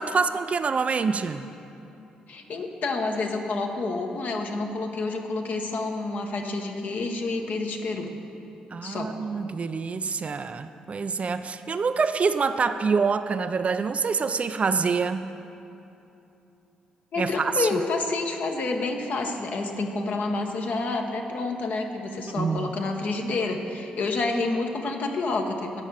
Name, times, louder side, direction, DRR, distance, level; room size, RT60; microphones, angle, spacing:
voice 1, 0.0-1.5 8.7-15.3 17.2-17.7 22.3-22.7, right 5 dB, 35° right, 10 dB, 0.4 m, -26 dB
voice 2, 2.3-8.1 8.8-9.1 17.1-25.8, left 3 dB, 50° left, 3 dB, 1.0 m, -29 dB
9.0 x 6.3 x 7.4 m, 2.8 s
figure-of-eight pair, 40°, 4 cm